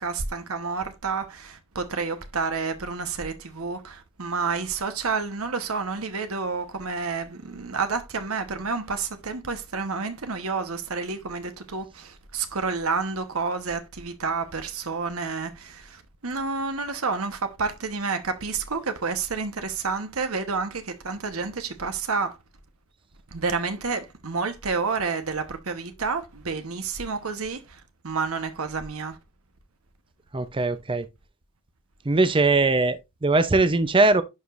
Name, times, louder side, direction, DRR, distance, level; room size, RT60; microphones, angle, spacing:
voice 1, 0.0-22.4 23.3-29.2, right 4 dB, 85° right, 1.1 m, -29 dB
voice 2, 30.3-31.1 32.0-34.2, right 3 dB, 25° right, 0.6 m, -21 dB
11.0 x 4.8 x 2.5 m
head